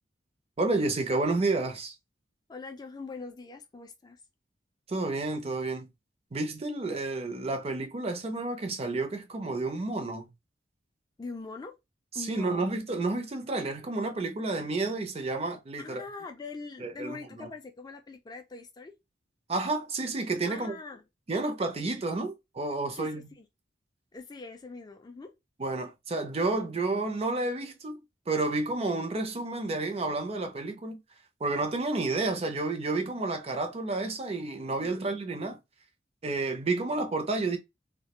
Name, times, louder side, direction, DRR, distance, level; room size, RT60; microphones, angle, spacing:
voice 1, 0.6-1.9 4.9-5.9 6.3-10.3 12.1-16.0 16.8-17.5 19.5-20.8 21.3-23.3 25.6-28.0 28.3-31.0 31.4-35.6 36.2-37.6, right 3 dB, 35° right, 0.5 m, -30 dB
voice 2, 2.5-4.2 11.2-11.7 12.1-12.7 15.8-18.9 20.5-21.0 23.0-23.4 24.1-25.3 34.7-35.0, left 4 dB, 20° left, 0.3 m, -42 dB
2.3 x 2.1 x 2.9 m
head